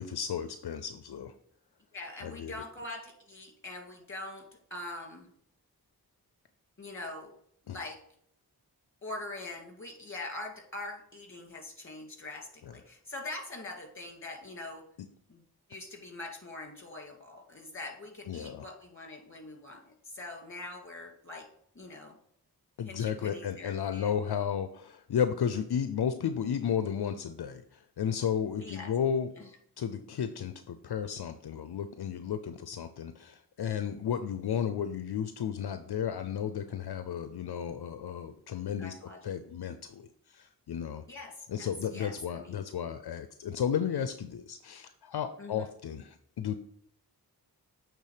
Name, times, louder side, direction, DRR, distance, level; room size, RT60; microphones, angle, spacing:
voice 1, 0.0-1.3 2.2-2.6 7.7-7.8 12.6-12.8 18.3-18.7 22.8-29.3 29.8-38.9 39.2-41.0 41.5-46.6, left 8 dB, 75° left, 9 dB, 0.5 m, -33 dB
voice 2, 1.9-4.4 4.7-5.3 6.8-7.3 7.7-8.0 9.0-14.8 15.3-15.4 15.7-21.4 21.7-22.2 22.9-24.1 28.6-28.9 29.4-29.5 38.8-39.2 41.1-42.6 45.4-45.6, left 2 dB, 30° left, 2 dB, 2.3 m, -43 dB
8.3 x 3.7 x 4.9 m, 0.66 s
cardioid pair, 50°, 39 cm